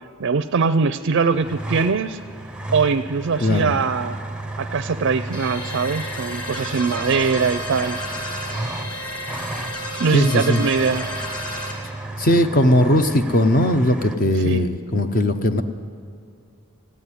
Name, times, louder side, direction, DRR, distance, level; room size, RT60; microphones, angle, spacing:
voice 1, 0.2-2.2 2.7-4.2 4.6-8.0 10.0-11.1 14.4-14.6, right 5 dB, 60° right, 11 dB, 0.4 m, -22 dB
sound 1, 1.3-14.2, right 1 dB, 5° right, 0.6 m, -34 dB
voice 2, 3.4-3.8 10.1-10.6 12.2-15.6, left 1 dB, 40° left, 8 dB, 0.7 m, -18 dB
sound 2, 5.3-11.7, equal, 20° left, 2.4 m, -31 dB
15.0 x 9.2 x 9.8 m, 2.5 s
head